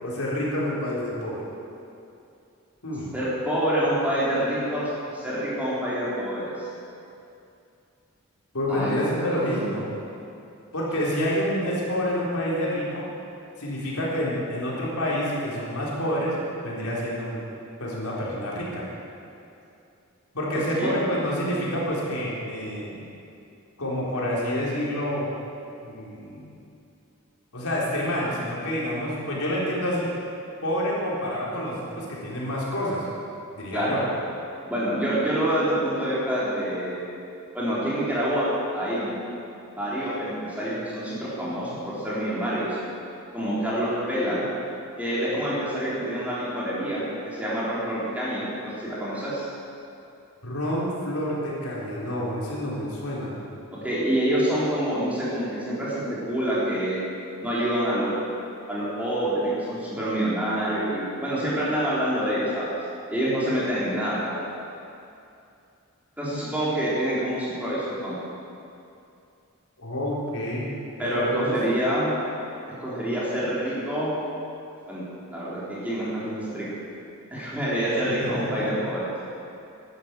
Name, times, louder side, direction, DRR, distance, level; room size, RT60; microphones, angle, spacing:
voice 1, 0.0-1.4 2.8-3.1 8.5-9.9 10.7-13.0 13.6-16.4 16.6-17.4 17.8-18.8 20.3-23.1 23.8-25.3 25.8-26.4 27.5-30.1 30.6-33.1 33.5-34.0 50.4-53.4 69.8-70.7 71.0-71.5 78.1-78.6, equal, 90° left, -5 dB, 3.9 m, -28 dB
voice 2, 3.1-6.7 8.7-9.4 20.5-20.9 33.7-34.0 34.7-37.0 37.5-38.5 38.7-39.1 39.7-42.8 43.3-44.5 45.0-49.5 53.8-57.0 57.4-58.1 58.7-62.7 63.1-64.4 66.2-68.1 71.0-72.1 72.8-74.2 74.9-75.0 75.3-76.7 77.3-79.1, right 1 dB, 5° right, -9 dB, 4.0 m, -27 dB
11.5 x 11.5 x 8.3 m, 2.6 s
head